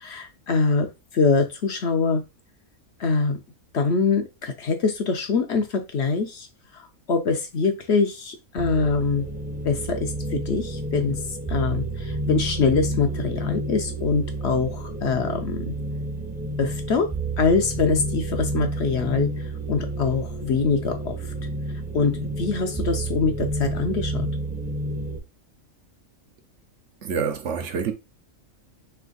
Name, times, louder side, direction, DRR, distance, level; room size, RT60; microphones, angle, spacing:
voice 1, 0.0-0.9 1.1-2.2 3.0-3.4 3.7-6.5 6.7-9.3 9.6-15.7 16.6-17.1 17.4-21.3 21.9-24.3, left 4 dB, 60° left, 0.9 m, -24 dB
sound 1, 8.6-25.2, right 2 dB, 10° right, 0.7 m, -30 dB
voice 2, 27.0-27.9, right 6 dB, 65° right, 1.0 m, -27 dB
3.4 x 3.4 x 3.8 m
omnidirectional pair, 1.4 m